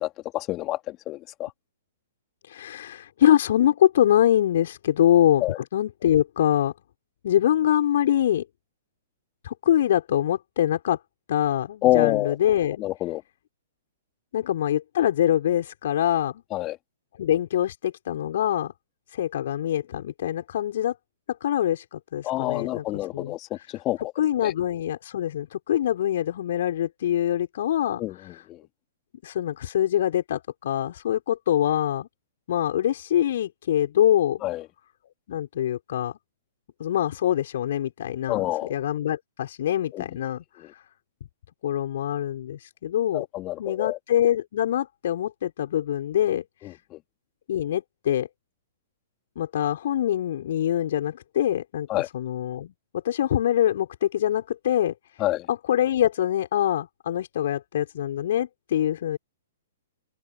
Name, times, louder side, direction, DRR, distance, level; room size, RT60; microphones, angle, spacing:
voice 1, 0.0-1.5 5.4-5.6 11.8-12.4 12.8-13.2 16.5-16.8 22.2-24.0 24.4-24.5 28.0-28.6 34.4-34.6 38.3-38.7 39.9-40.1 43.1-44.0 46.6-47.0 51.9-52.1 55.2-55.5, left 16 dB, 30° left, 3.8 m, -27 dB
voice 2, 2.5-5.5 5.7-6.7 7.2-8.4 9.4-11.0 11.3-12.8 14.3-16.4 17.2-18.7 19.1-21.0 21.4-22.8 23.1-23.4 24.2-28.0 28.3-28.4 29.2-32.1 32.5-34.4 35.3-36.1 36.8-40.4 40.7-40.8 41.6-43.3 43.6-46.5 47.5-48.3 49.4-52.7 53.0-54.9 55.5-59.2, left 11 dB, 55° left, 5.4 m, -24 dB
open air
figure-of-eight pair, 115°, 0 cm